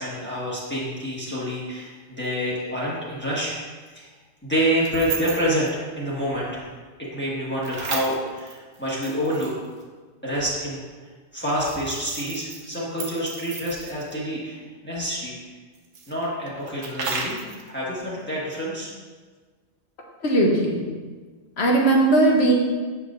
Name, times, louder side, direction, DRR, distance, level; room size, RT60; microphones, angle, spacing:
voice 1, 0.0-3.5 3.9-4.1 4.4-5.7 6.0-6.7 7.1-9.5 10.2-10.8 11.3-15.3 16.1-18.9, equal, 10° left, -7 dB, 1.5 m, -27 dB
sound 1, 2.2-2.3 4.8-5.7 7.6-9.8 11.4-14.2 15.7-17.7, right 4 dB, 85° right, 1.2 m, -34 dB
voice 2, 20.2-20.8 21.6-22.5, right 2 dB, 60° left, -1 dB, 1.2 m, -18 dB
8.1 x 5.7 x 2.6 m, 1.4 s
omnidirectional pair, 1.3 m